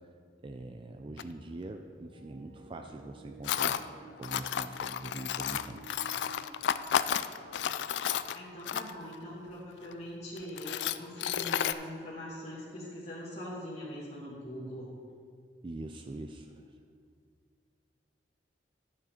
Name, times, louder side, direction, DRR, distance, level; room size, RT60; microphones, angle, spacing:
voice 1, 0.4-6.0 15.6-16.7, right 2 dB, 30° right, 5 dB, 0.4 m, -43 dB
Tools, 1.2-1.3 3.4-3.8 4.2-9.1 9.8-9.9 10.4-11.7, left 9 dB, 75° left, 0.3 m, -32 dB
sound 1, 2.0-8.1, right 2 dB, 55° right, 1.4 m, -54 dB
voice 2, 8.3-14.9, left 1 dB, 40° left, -8 dB, 1.5 m, -42 dB
11.5 x 6.9 x 4.3 m, 2.2 s
head